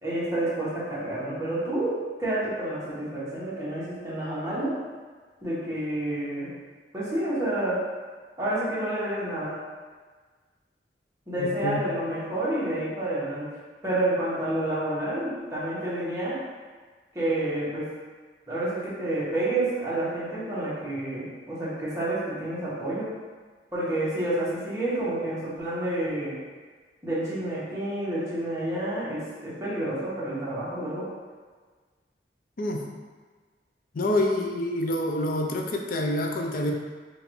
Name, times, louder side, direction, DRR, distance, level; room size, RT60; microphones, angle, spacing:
voice 1, 0.0-1.9 2.2-4.7 5.4-6.5 6.9-7.8 8.4-9.5 11.3-13.5 13.8-16.4 17.1-17.9 18.5-23.1 23.7-26.3 27.0-31.1, right 1 dB, 20° right, -9 dB, 1.3 m, -29 dB
voice 2, 11.4-11.8 32.6-32.9 33.9-36.7, left 1 dB, 55° left, 2 dB, 0.5 m, -27 dB
4.9 x 2.6 x 3.2 m, 1.5 s
head